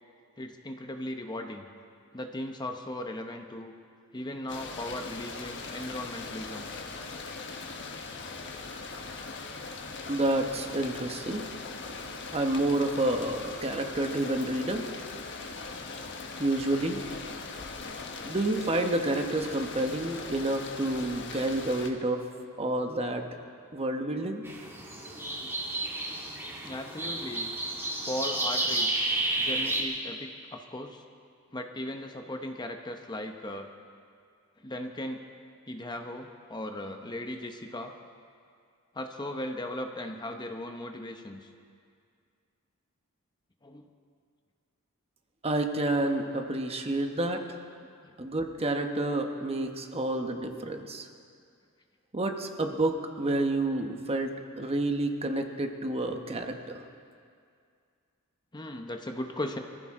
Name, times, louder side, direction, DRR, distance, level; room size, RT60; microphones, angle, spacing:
voice 1, 0.4-1.7 2.1-3.7 4.1-6.7 24.7-24.8 25.0-25.5 26.6-27.5 28.1-31.0 31.5-33.7 34.6-35.2 35.7-37.9 38.9-41.5 43.6-43.8 48.0-48.1 50.1-50.2 58.5-59.6, left 1 dB, 20° left, 4 dB, 0.8 m, -37 dB
sound 1, 4.5-21.9, left 4 dB, 55° left, 1.3 m, -40 dB
voice 2, 10.1-11.5 12.3-14.8 16.4-17.0 18.2-22.2 22.6-23.2 23.7-24.4 45.4-47.6 48.2-51.1 52.1-56.8, right 2 dB, 30° right, 4 dB, 1.1 m, -29 dB
sound 2, 24.4-29.8, right 2 dB, 10° right, 2.3 m, -31 dB
24.5 x 15.0 x 3.7 m, 2.2 s
head